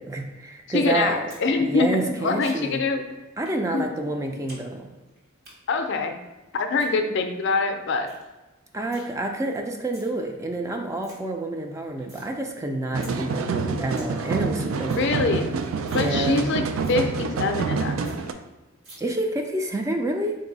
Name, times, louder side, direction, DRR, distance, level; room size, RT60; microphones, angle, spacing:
voice 1, 0.0-1.1 1.6-2.8 3.4-4.9 8.7-15.2 15.9-16.5 19.0-20.3, right 2 dB, 15° right, 4 dB, 0.3 m, -28 dB
voice 2, 0.7-3.2 3.7-3.9 5.7-6.2 6.5-8.1 14.8-15.5 15.9-16.6 16.9-18.2, left 3 dB, 60° left, 6 dB, 0.4 m, -24 dB
sound 1, 1.3-1.5 1.7-2.9 3.4-3.6 3.9-4.6 4.9-5.5 6.6-6.9 7.4-7.5 7.8-7.9 8.1-8.3 8.5-9.1 9.7-10.1 10.5-10.6 10.8-11.1 11.5-12.3 12.6-12.7 13.0-13.1 13.5-13.6 13.8-14.1 14.4-14.5 14.7-15.1 15.4-15.5 15.8-16.1 16.4-16.5 16.8-17.0 17.4-17.5 17.7-17.8 18.0-18.2 18.8-19.0, right 1 dB, 55° right, 1.4 m, -47 dB
sound 2, 12.9-18.3, right 4 dB, 85° right, 0.4 m, -27 dB
4.0 x 2.6 x 3.9 m, 1.1 s
head